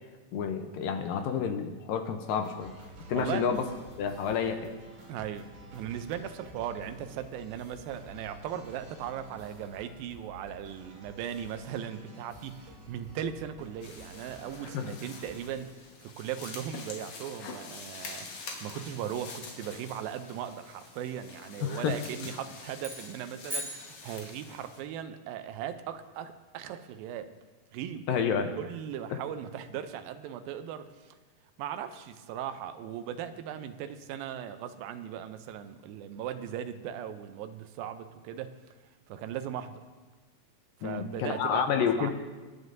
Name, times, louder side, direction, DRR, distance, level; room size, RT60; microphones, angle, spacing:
voice 1, 0.3-2.7 3.1-3.7 4.0-4.6 14.7-14.9 21.6-21.9 28.1-28.5 40.8-42.1, left 7 dB, 75° left, 6 dB, 2.2 m, -29 dB
sound 1, 2.4-15.5, right 1 dB, 55° right, 4.1 m, -51 dB
voice 2, 3.2-3.5 5.1-27.3 27.7-28.2 28.6-31.1 31.6-38.5 39.1-39.8 40.8-42.1, right 9 dB, 80° right, 9 dB, 2.3 m, -38 dB
sound 2, 13.8-24.8, left 4 dB, 55° left, 2.3 m, -46 dB
sound 3, 22.8-24.7, equal, 5° right, 0.5 m, -40 dB
23.5 x 10.0 x 2.7 m, 1.3 s
omnidirectional pair, 4.4 m